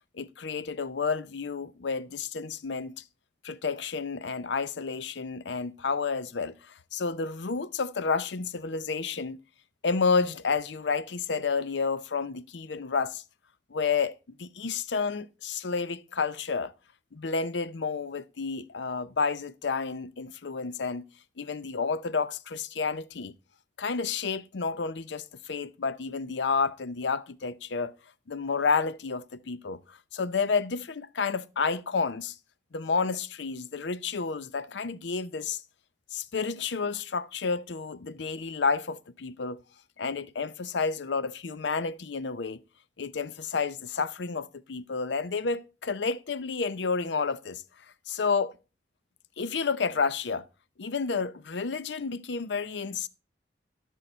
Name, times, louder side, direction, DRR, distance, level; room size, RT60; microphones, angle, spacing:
voice 1, 0.1-2.9 3.4-9.4 9.8-13.2 13.7-16.7 17.1-21.0 21.4-23.3 23.8-27.9 28.3-32.4 32.7-35.6 36.1-39.6 40.0-42.6 43.0-47.6 48.1-48.5 49.4-50.4 50.8-53.1, left 5 dB, 75° left, 0.6 m, -30 dB
12.5 x 6.4 x 4.3 m
head